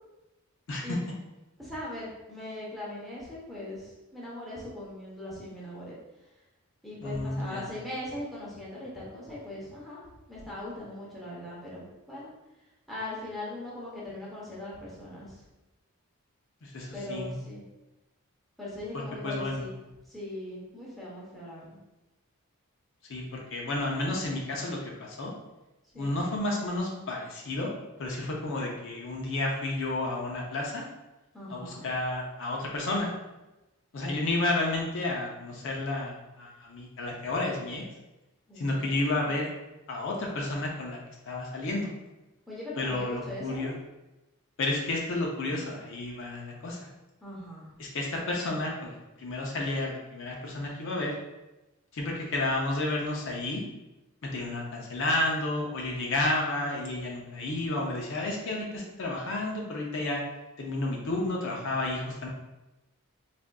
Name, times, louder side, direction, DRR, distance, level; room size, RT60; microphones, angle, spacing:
voice 1, 1.6-6.0 6.8-10.0 10.3-12.3 12.9-15.4 16.9-17.6 18.6-19.7 20.0-21.8 25.9-26.2 31.3-31.8 38.5-39.3 42.5-43.7 47.2-47.7, left 1 dB, ahead, -7 dB, 0.7 m, -40 dB
voice 2, 7.0-7.7 16.6-17.4 18.9-19.6 23.1-25.3 25.9-27.7 28.0-30.8 31.5-33.1 33.9-37.8 38.6-39.5 39.9-41.0 41.3-41.9 42.8-43.7 44.6-46.9 47.8-51.1 51.9-53.6 54.2-60.2 60.6-62.3, left 2 dB, 60° left, -1 dB, 0.5 m, -31 dB
3.5 x 2.5 x 2.2 m, 1.0 s
head